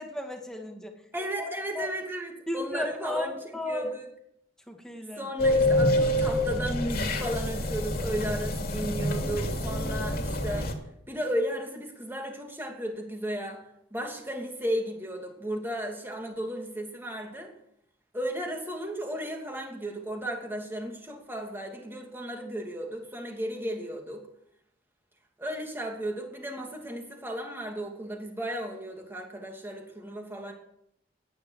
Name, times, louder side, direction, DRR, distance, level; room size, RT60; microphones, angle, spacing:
voice 1, 0.0-0.9 1.7-1.9 2.5-3.9 4.7-5.3, left 1 dB, 5° left, 2 dB, 2.3 m, -34 dB
voice 2, 1.1-3.4 3.6-4.1 5.2-10.7 11.1-13.6 13.9-17.5 18.1-24.2 25.4-30.5, right 1 dB, 10° right, 2 dB, 2.8 m, -34 dB
sound 1, 5.4-10.7, left 1 dB, 55° left, 2.8 m, -27 dB
17.5 x 10.0 x 6.5 m, 0.75 s
head